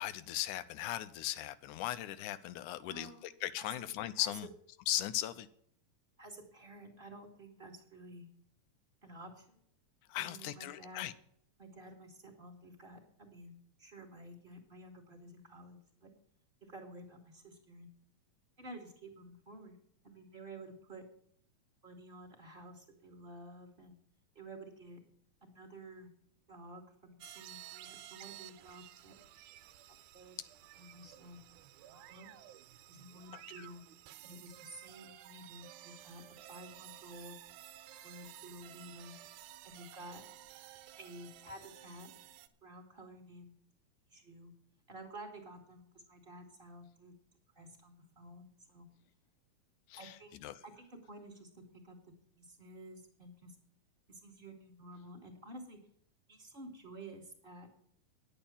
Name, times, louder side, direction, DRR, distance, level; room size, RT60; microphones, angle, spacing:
voice 1, 0.0-4.5 4.9-5.5 10.1-11.1 33.6-33.7 49.9-50.2 50.4-50.6, left 13 dB, 80° left, 13 dB, 2.2 m, -38 dB
voice 2, 2.8-3.3 3.6-3.8 4.2-4.3 6.2-8.3 9.0-9.6 10.2-11.1 11.6-16.1 16.6-17.9 18.6-19.8 20.0-21.0 21.8-24.0 24.4-25.0 25.4-26.1 26.5-29.2 29.9-30.4 30.8-31.4 32.1-32.3 32.9-33.8 34.2-37.4 38.0-39.1 39.6-40.2 41.0-42.1 42.6-43.6 44.1-44.5 44.9-47.1 47.6-48.9 50.0-50.4 50.6-52.0 52.4-53.6 54.1-55.8 56.3-57.7, right 1 dB, 20° right, 3 dB, 1.8 m, -52 dB
sound 1, 27.2-42.5, right 13 dB, 80° right, 2.1 m, -54 dB
10.5 x 8.9 x 7.1 m, 0.65 s
omnidirectional pair, 3.6 m